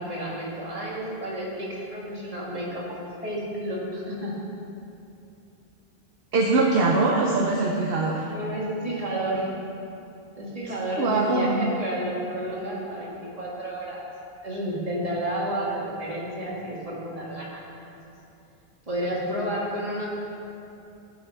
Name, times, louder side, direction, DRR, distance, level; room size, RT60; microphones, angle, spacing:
voice 1, 0.0-2.8 3.2-4.3 8.2-9.5 10.4-14.0 14.4-17.6 17.8-18.1 18.9-20.1, right 1 dB, 35° right, -6 dB, 2.1 m, -31 dB
voice 2, 6.3-8.2 11.0-11.7, right 3 dB, 65° right, -1 dB, 1.0 m, -22 dB
15.0 x 6.1 x 3.5 m, 2.7 s
omnidirectional pair, 1.1 m